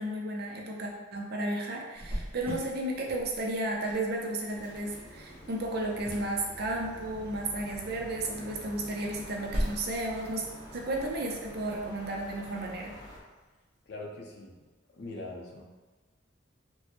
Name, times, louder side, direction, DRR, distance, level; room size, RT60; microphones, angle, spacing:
voice 1, 0.0-10.4 10.7-12.9, right 1 dB, 55° right, -1 dB, 0.6 m, -33 dB
Cricket, 1.9-13.4, equal, 30° right, 0.9 m, -42 dB
sound 1, 4.5-13.2, equal, 20° left, 0.7 m, -48 dB
voice 2, 13.9-14.6 14.9-15.6, left 2 dB, 60° left, -1 dB, 0.6 m, -42 dB
4.5 x 2.1 x 2.9 m, 1.3 s
head